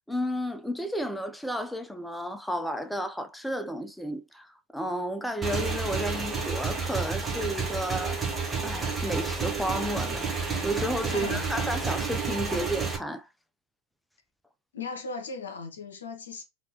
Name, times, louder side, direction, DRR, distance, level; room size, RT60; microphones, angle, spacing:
voice 1, 0.1-8.3 8.6-13.3, equal, 5° left, 0.4 m, -32 dB
Motorcycle / Engine, 5.4-13.0, right 4 dB, 15° right, 0.8 m, -30 dB
voice 2, 11.1-11.5 14.7-16.4, left 4 dB, 75° left, 0.8 m, -37 dB
2.9 x 2.8 x 2.9 m
figure-of-eight pair, 85°, 0 cm